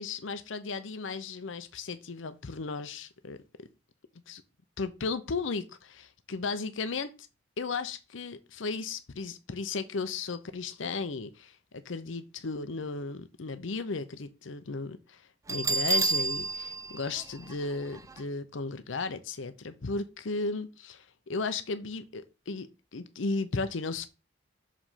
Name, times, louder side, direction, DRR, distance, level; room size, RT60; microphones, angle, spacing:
voice 1, 0.0-3.4 4.3-4.4 4.8-7.1 7.6-11.6 11.8-24.1, left 4 dB, 90° left, 0.7 m, -35 dB
Bell, 15.5-18.2, right 3 dB, 15° right, 0.4 m, -30 dB
6.5 x 5.1 x 5.6 m
head